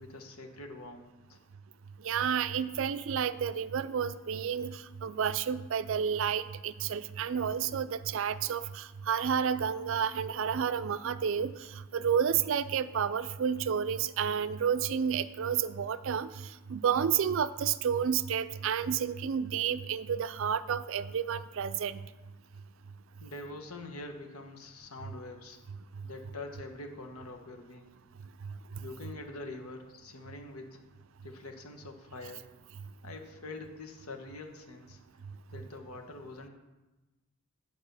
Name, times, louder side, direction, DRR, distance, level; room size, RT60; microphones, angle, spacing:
voice 1, 0.0-1.4 23.2-25.6 26.0-28.0 28.8-30.8 31.2-32.5 33.0-35.0 35.5-36.5, left 2 dB, 90° left, 4 dB, 1.2 m, -45 dB
voice 2, 2.0-11.5 11.9-16.3 16.7-22.0, right 7 dB, 65° right, 14 dB, 0.4 m, -30 dB
9.2 x 4.8 x 6.7 m, 1.1 s
head